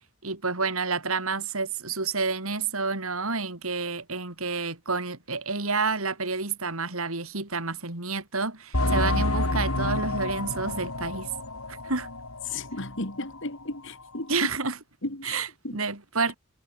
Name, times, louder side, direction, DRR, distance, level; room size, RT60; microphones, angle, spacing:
voice 1, 0.2-11.3 11.7-12.1 14.3-14.8 15.2-16.4, right 4 dB, 75° right, 4.1 m, -29 dB
sound 1, 8.7-13.0 13.3-13.4 14.0-14.1, left 2 dB, 75° left, 5.9 m, -29 dB
voice 2, 12.5-14.3 15.0-15.8, left 2 dB, 60° left, 3.6 m, -35 dB
head